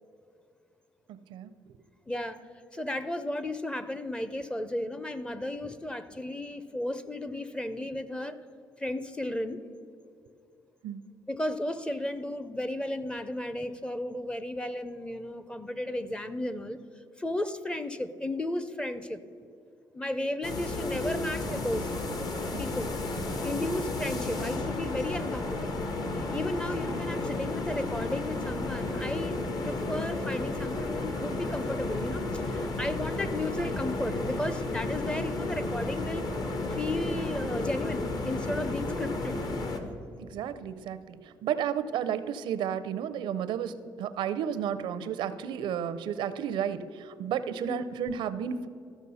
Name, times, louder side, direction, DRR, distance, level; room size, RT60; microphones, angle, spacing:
voice 1, 1.1-1.5 10.8-11.0 22.5-22.8 23.5-23.7 40.2-48.7, right 8 dB, 80° right, 13 dB, 0.5 m, -32 dB
voice 2, 2.1-2.4 2.7-8.4 8.8-9.7 11.3-16.8 17.2-19.2 19.9-21.9 22.6-22.9 23.4-25.9 26.3-36.3 36.7-39.4 47.7-47.8, left 1 dB, 10° left, 13 dB, 0.5 m, -34 dB
sound 1, 20.4-39.8, left 2 dB, 55° left, 1.2 m, -32 dB
14.0 x 6.1 x 5.5 m, 2.6 s
cardioid pair, 110°, 8 cm